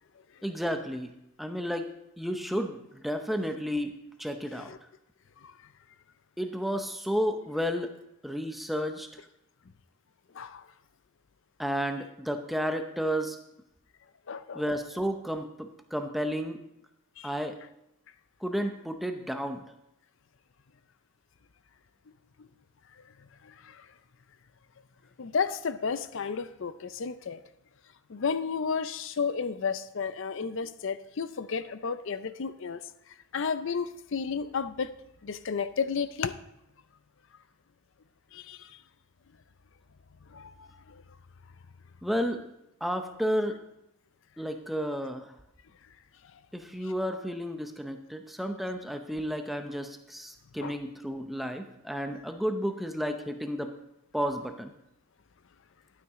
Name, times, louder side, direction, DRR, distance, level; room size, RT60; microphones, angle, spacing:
voice 1, 0.4-1.9 2.2-4.7 6.4-7.9 8.2-9.1 11.6-13.4 14.5-16.6 17.2-17.6 18.4-19.6 42.0-42.5 42.8-43.6 44.4-45.3 46.5-53.7 54.1-54.7, equal, ahead, 0.7 m, -32 dB
voice 2, 14.3-14.6 17.2-17.3 22.4-22.5 23.4-23.8 25.2-27.4 28.1-32.8 33.3-34.9 35.2-36.3 38.3-38.7 40.3-41.0 50.6-50.7, left 5 dB, 55° left, 0.5 m, -32 dB
12.0 x 9.3 x 3.6 m
head